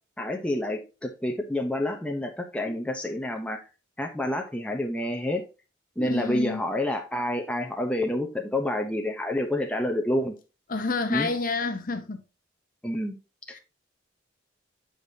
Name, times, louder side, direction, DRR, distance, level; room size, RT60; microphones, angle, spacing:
voice 1, 0.2-3.6 4.0-5.4 6.0-10.3 11.1-11.3 12.8-13.2 13.5-13.6, left 1 dB, 5° left, 0.6 m, -28 dB
voice 2, 6.0-6.6 10.7-12.2 13.5-13.6, left 3 dB, 45° left, 0.8 m, -29 dB
7.9 x 5.0 x 2.7 m
head